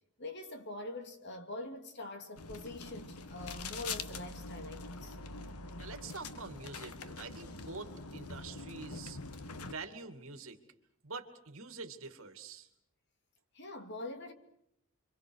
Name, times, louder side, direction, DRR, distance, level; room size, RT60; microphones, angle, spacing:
voice 1, 0.2-5.2 13.5-14.3, left 1 dB, 50° left, 2.7 m, -44 dB
sound 1, 2.4-9.7, left 4 dB, 90° left, 1.5 m, -44 dB
voice 2, 5.8-9.2 9.6-10.6 11.0-12.7, right 4 dB, 65° right, 2.6 m, -46 dB
29.5 x 24.5 x 6.4 m
head